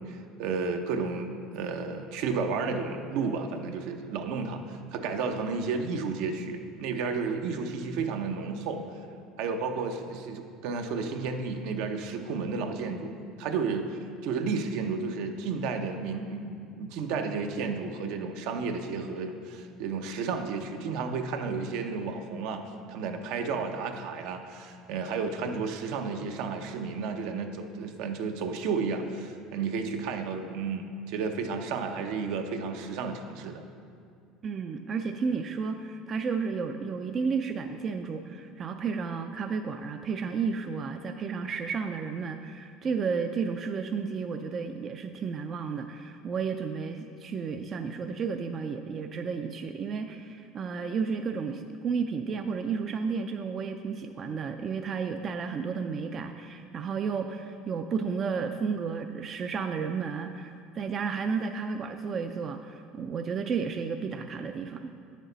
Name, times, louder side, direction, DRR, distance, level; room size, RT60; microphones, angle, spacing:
voice 1, 0.1-8.8 9.4-13.1 13.4-22.6 22.9-33.6, right 4 dB, 70° right, 5 dB, 0.7 m, -32 dB
voice 2, 34.4-64.9, right 5 dB, 35° right, 6 dB, 0.3 m, -32 dB
9.1 x 6.3 x 3.9 m, 2.3 s
supercardioid pair, 125°, 0 cm